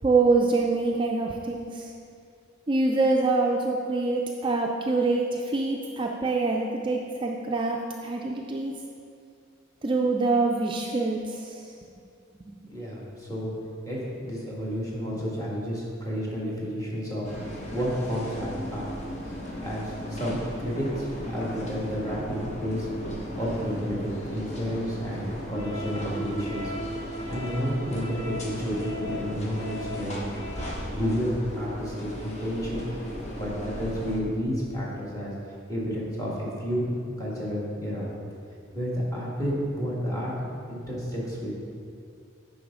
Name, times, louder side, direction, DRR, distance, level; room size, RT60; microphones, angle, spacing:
voice 1, 0.0-1.9 2.7-8.7 9.8-11.7 12.4-12.6, right 3 dB, 25° right, 0 dB, 0.4 m, -25 dB
voice 2, 12.6-13.5 13.8-18.9 19.6-22.9 23.3-30.3 30.9-32.9 33.4-35.3 35.7-38.1 38.7-41.5, equal, 15° left, -6 dB, 1.8 m, -31 dB
sound 1, 17.2-34.2, equal, 35° left, 1.1 m, -36 dB
9.3 x 5.5 x 3.7 m, 2.5 s
head